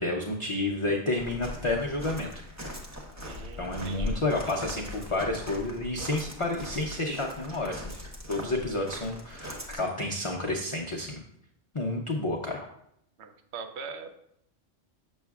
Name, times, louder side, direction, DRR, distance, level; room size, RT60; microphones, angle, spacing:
voice 1, 0.0-2.3 3.6-7.9 8.3-11.2 11.7-12.7, left 2 dB, 40° left, -1 dB, 0.4 m, -30 dB
Walk footsteps, 1.2-9.7, left 1 dB, 15° right, 0.7 m, -40 dB
voice 2, 3.2-4.2 13.2-14.1, right 5 dB, 70° right, 5 dB, 0.9 m, -42 dB
7.0 x 6.1 x 2.3 m, 0.75 s
omnidirectional pair, 1.2 m